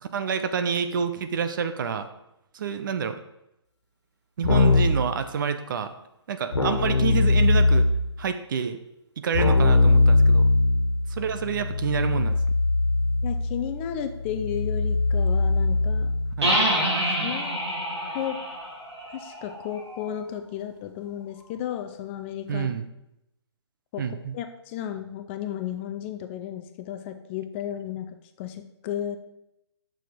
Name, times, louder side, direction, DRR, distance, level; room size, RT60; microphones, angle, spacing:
voice 1, 0.0-2.1 2.5-3.2 4.4-5.9 6.3-7.9 8.2-8.8 9.2-10.5 11.1-12.4 16.4-16.6 17.1-17.3 22.5-22.9 24.0-24.3, right 7 dB, 45° right, 10 dB, 0.8 m, -28 dB
Keyboard (musical), 4.4-5.1 6.5-8.1 9.3-16.4, left 3 dB, 85° left, 1.6 m, -21 dB
voice 2, 13.2-16.1 17.2-17.6 18.1-18.4 19.1-22.7 23.9-24.0 24.3-29.2, left 10 dB, 25° left, 8 dB, 0.6 m, -33 dB
sound 1, 16.4-20.1, equal, 75° right, 3.5 m, -27 dB
9.2 x 6.5 x 5.1 m, 0.85 s
figure-of-eight pair, 135°, 15 cm